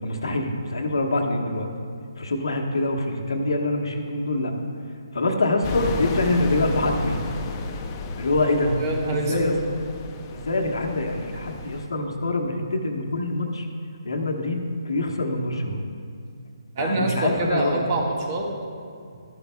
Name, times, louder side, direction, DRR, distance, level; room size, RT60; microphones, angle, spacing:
voice 1, 0.0-1.7 2.2-4.5 5.1-7.2 8.2-8.7 9.1-9.5 10.3-13.7 14.0-15.8 16.8-17.8, left 2 dB, 70° left, 2 dB, 1.2 m, -25 dB
sound 1, 5.6-11.9, left 3 dB, 25° left, 0.6 m, -33 dB
voice 2, 8.4-9.5 11.5-11.6 16.7-18.5, right 2 dB, 35° right, 0 dB, 1.6 m, -26 dB
12.5 x 11.5 x 2.3 m, 2.3 s
figure-of-eight pair, 145°, 3 cm